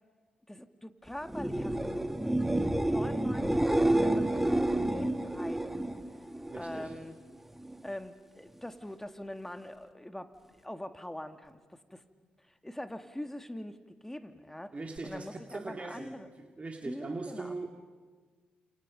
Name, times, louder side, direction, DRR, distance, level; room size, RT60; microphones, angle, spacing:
voice 1, 0.5-2.1 2.3-5.9 6.5-7.1 7.8-12.0 12.5-13.8 14.0-14.8 15.0-16.3 16.8-17.5, left 1 dB, 10° left, 8 dB, 2.1 m, -43 dB
sound 1, 1.2-7.0 7.3-7.9 15.0-15.1, right 1 dB, 5° right, 1.8 m, -29 dB
voice 2, 6.5-6.9 14.7-16.1 16.4-17.7, right 3 dB, 35° right, 2 dB, 2.5 m, -40 dB
29.5 x 28.0 x 5.3 m, 1.5 s
hypercardioid pair, 40°, 4 cm